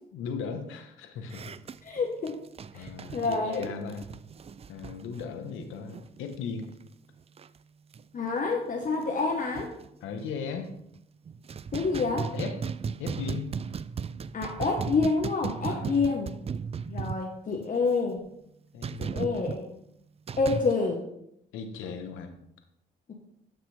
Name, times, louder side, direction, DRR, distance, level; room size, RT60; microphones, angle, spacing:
voice 1, 0.1-1.5 2.7-4.1 4.7-6.7 10.0-10.7 12.3-12.6 13.0-13.5 15.7-16.0 18.7-19.1 21.5-22.3, left 5 dB, 90° left, 6 dB, 1.2 m, -37 dB
sound 1, 1.3-6.4 6.6-6.8 7.2-7.6 7.9-8.0 8.5-8.6 8.8-9.9 10.5-11.0 11.3-17.7 18.8-19.6 20.3-20.7, right 6 dB, 30° right, 0.4 m, -36 dB
voice 2, 1.8-2.4 2.7-3.7 8.1-9.7 11.7-12.3 14.3-16.5 16.9-18.2 19.0-19.7 20.4-21.0 23.1-23.2, left 4 dB, 40° left, 0 dB, 1.4 m, -28 dB
12.5 x 5.9 x 3.5 m, 0.77 s
cardioid pair, 90°, 20 cm